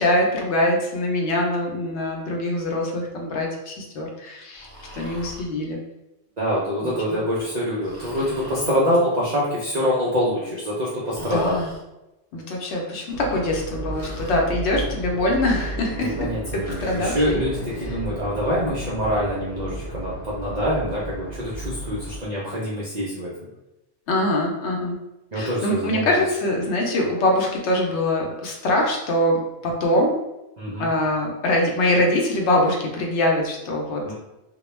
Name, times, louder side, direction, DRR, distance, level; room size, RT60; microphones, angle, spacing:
voice 1, 0.0-4.7 4.9-5.8 6.8-7.2 11.2-11.7 12.3-16.3 16.7-17.4 24.1-25.0 25.3-30.2 30.8-34.0, left 1 dB, 70° left, 0 dB, 0.8 m, -23 dB
Breathing, 4.5-5.5 7.8-8.8 11.1-11.8 13.9-14.4 16.6-17.3, equal, 30° left, 0.5 m, -41 dB
voice 2, 6.4-11.6 16.0-23.3 25.3-26.2 30.6-30.9 34.0-34.1, equal, 60° right, -6 dB, 0.4 m, -25 dB
sound 1, 13.1-22.2, right 1 dB, 90° left, 1.1 m, -33 dB
2.2 x 2.1 x 3.1 m, 0.95 s
omnidirectional pair, 1.3 m